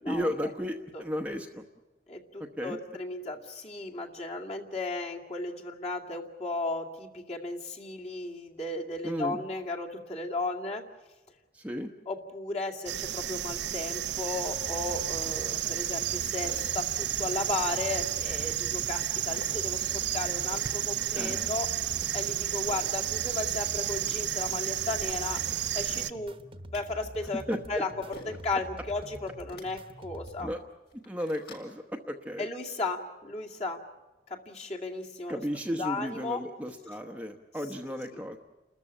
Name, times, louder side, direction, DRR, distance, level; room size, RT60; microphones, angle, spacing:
voice 1, 0.1-1.6 2.6-2.8 9.0-9.4 11.5-11.9 21.1-21.5 27.5-27.8 30.4-30.6 31.1-32.5 35.3-38.4, equal, 10° right, 4 dB, 1.0 m, -34 dB
voice 2, 2.1-10.8 12.1-21.7 22.1-25.4 25.7-26.4 26.7-27.4 27.7-30.5 32.4-33.8 34.3-35.4 35.8-36.4 38.1-38.2, left 2 dB, 35° left, 0 dB, 2.3 m, -35 dB
sound 1, 12.9-26.1, right 12 dB, 70° right, 0.8 m, -32 dB
sound 2, 14.5-30.5, right 1 dB, 30° right, 1.2 m, -46 dB
sound 3, 15.2-15.3 16.4-16.8 17.8-18.0 19.3-19.6 20.3-20.6 22.7-22.9 23.6-23.7 23.9-24.1 25.0-25.1 25.4-25.6 26.4-26.8 28.1-28.4 29.4-29.6 30.3-30.4 30.8-31.7, left 1 dB, 60° left, 6.8 m, -47 dB
30.0 x 14.0 x 10.0 m, 1.1 s
head